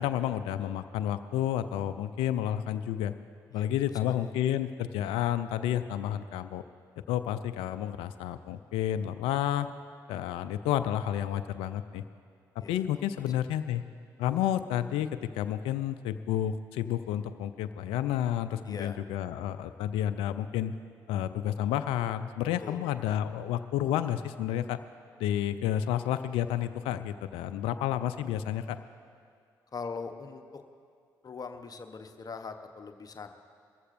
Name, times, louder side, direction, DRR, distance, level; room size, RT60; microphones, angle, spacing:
voice 1, 0.0-3.1 3.5-6.6 7.1-9.7 10.1-12.0 12.6-13.8 14.2-20.7 21.1-24.8 25.2-28.8, left 11 dB, 70° left, 11 dB, 0.4 m, -30 dB
voice 2, 18.6-19.0 22.6-22.8 29.7-30.6 31.2-33.3, left 4 dB, 40° left, 7 dB, 0.9 m, -41 dB
21.5 x 14.5 x 2.6 m, 2.3 s
hypercardioid pair, 45°, 10 cm